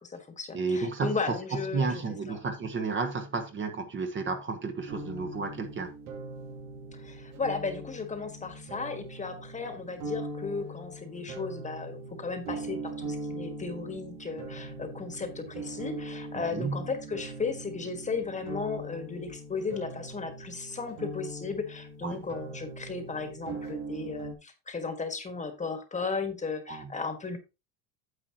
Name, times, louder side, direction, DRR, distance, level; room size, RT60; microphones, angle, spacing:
voice 1, 0.0-2.0 2.3-2.4 6.9-27.4, left 4 dB, 20° left, 1.5 m, -35 dB
voice 2, 0.5-5.9 16.5-16.8 22.0-22.2 26.7-26.9, right 4 dB, 30° right, 1.3 m, -32 dB
sound 1, 4.9-24.3, right 2 dB, 85° right, 3.0 m, -41 dB
9.6 x 7.7 x 2.9 m
cardioid pair, 135°, 39 cm